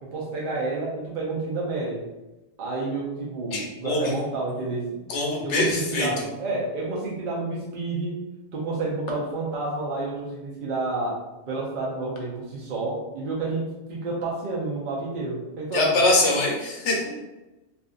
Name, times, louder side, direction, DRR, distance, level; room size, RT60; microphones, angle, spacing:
voice 1, 0.0-2.0 2.6-5.0 5.4-8.2 8.5-11.2 11.5-16.0, right 3 dB, 55° right, -4 dB, 0.7 m, -30 dB
voice 2, 3.5-4.1 5.1-6.3 15.7-17.1, left 2 dB, 90° left, -1 dB, 1.0 m, -23 dB
2.6 x 2.4 x 2.4 m, 1.1 s
omnidirectional pair, 1.1 m